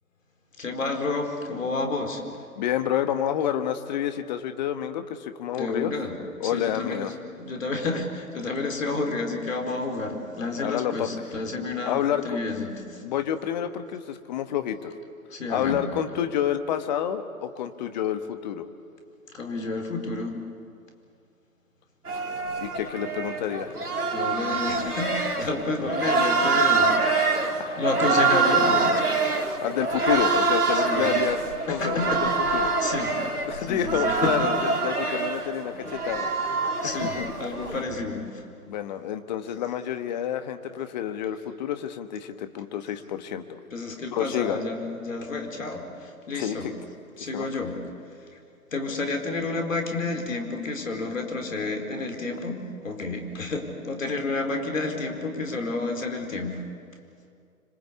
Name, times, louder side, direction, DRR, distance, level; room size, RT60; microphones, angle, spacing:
voice 1, 0.6-2.3 5.5-6.1 6.4-13.0 15.3-16.0 19.3-20.4 24.1-26.9 27.3-29.1 30.7-31.2 31.7-32.2 32.8-34.5 36.8-38.4 43.7-46.7 47.2-47.8 48.3-48.4 48.7-56.6, left 3 dB, 60° left, 4 dB, 4.6 m, -30 dB
voice 2, 2.6-5.9 6.4-7.1 10.6-11.1 11.8-12.4 13.0-14.9 15.5-18.7 22.6-23.7 27.6-27.8 29.6-31.4 31.7-32.7 33.5-36.3 36.8-37.3 38.7-43.6 44.1-44.6 46.3-46.6 47.3-47.5, left 10 dB, 30° left, 9 dB, 1.4 m, -29 dB
sound 1, 22.1-37.8, right 3 dB, 85° right, 3.1 m, -25 dB
26.0 x 25.5 x 8.4 m, 2.4 s
figure-of-eight pair, 125°, 44 cm